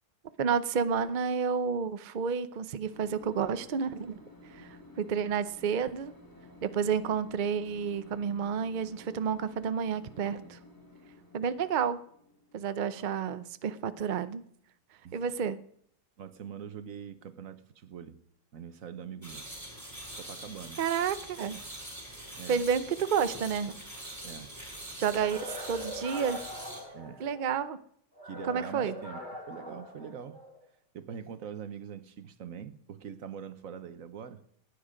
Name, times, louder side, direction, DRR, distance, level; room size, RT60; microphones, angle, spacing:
voice 1, 0.4-4.2 4.5-6.1 6.6-10.6 11.3-12.0 12.5-14.4 15.1-15.6 20.8-21.6 22.5-23.7 25.0-26.4 27.2-27.8 28.4-28.9, right 6 dB, 75° right, 0.4 m, -30 dB
sound 1, 2.9-14.0, left 1 dB, 10° left, 2.4 m, -53 dB
voice 2, 16.2-18.2 18.5-19.5 20.1-20.8 22.4-22.6 24.2-24.5 26.9-27.2 28.3-30.4 30.9-34.4, right 8 dB, 55° right, 1.2 m, -43 dB
sound 2, 19.2-26.8, right 1 dB, 10° right, 4.3 m, -44 dB
sound 3, 25.1-27.6 28.2-30.6, left 1 dB, 25° right, 3.0 m, -42 dB
16.5 x 10.0 x 5.1 m
omnidirectional pair, 1.8 m